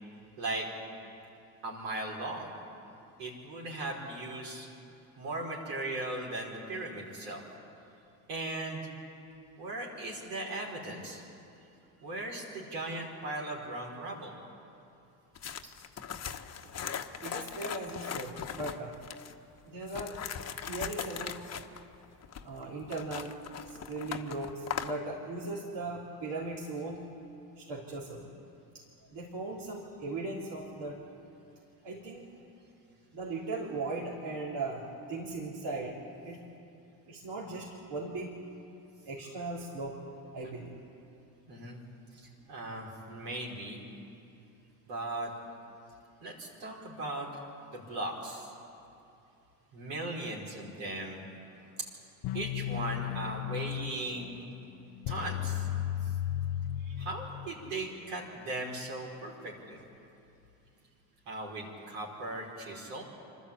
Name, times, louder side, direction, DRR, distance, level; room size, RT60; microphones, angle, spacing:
voice 1, 1.6-2.5 3.2-4.7 5.2-7.4 8.3-8.9 9.6-11.2 12.0-14.3 41.5-41.8 42.1-43.8 44.9-45.3 46.2-47.4 47.7-48.5 49.7-51.2 51.8-51.9 52.3-54.4 55.1-55.7 57.0-59.8 61.3-63.0, right 2 dB, 75° right, -2 dB, 5.2 m, -38 dB
sound 1, 15.3-19.3 19.8-25.0, left 8 dB, 35° left, 1.2 m, -39 dB
voice 2, 16.6-18.9 19.7-20.2 20.6-21.4 22.4-23.3 23.7-27.0 27.6-28.4 28.7-28.8 29.1-31.0 31.8-32.3 33.1-34.8 35.1-36.0 36.2-36.4 37.1-38.3 39.1-40.0 40.3-40.7 56.8-57.1, right 3 dB, 55° right, -5 dB, 3.7 m, -38 dB
sound 2, 52.2-57.8, left 12 dB, 50° left, 0.6 m, -35 dB
26.0 x 12.5 x 8.5 m, 2.7 s
hypercardioid pair, 80°, 47 cm